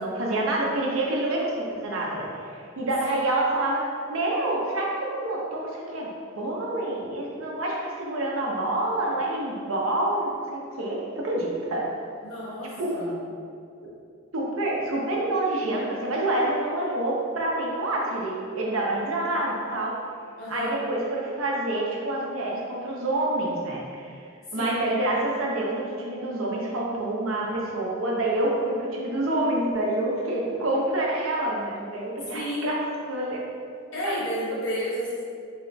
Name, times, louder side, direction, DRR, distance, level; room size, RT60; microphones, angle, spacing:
voice 1, 0.0-3.8 4.1-6.1 6.3-11.8 12.8-12.9 13.8-13.9 14.3-19.9 20.5-24.2 24.5-32.8 33.1-33.4 34.1-34.2, right 1 dB, 85° right, -3 dB, 0.7 m, -27 dB
voice 2, 12.2-13.2 20.4-20.8 24.5-24.8 32.3-32.8 33.9-35.2, equal, 80° left, -9 dB, 1.5 m, -31 dB
3.6 x 2.3 x 3.8 m, 2.4 s
head